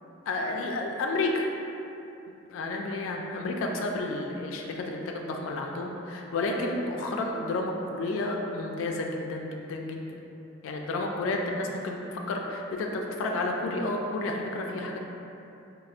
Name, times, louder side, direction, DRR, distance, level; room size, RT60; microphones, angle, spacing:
voice 1, 0.3-1.5 2.5-10.0 10.6-15.0, left 2 dB, 90° left, 1 dB, 0.3 m, -31 dB
4.1 x 2.0 x 2.4 m, 2.9 s
head